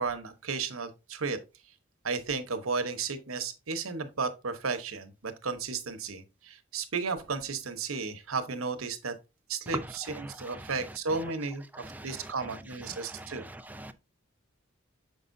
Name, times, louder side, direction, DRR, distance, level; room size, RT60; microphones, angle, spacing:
voice 1, 0.0-1.4 2.0-9.1 9.5-13.4, right 4 dB, 85° right, 1.0 m, -34 dB
voice 2, 9.7-10.7 11.7-12.6 12.9-13.9, right 1 dB, 10° right, 0.4 m, -42 dB
6.8 x 5.5 x 2.6 m
head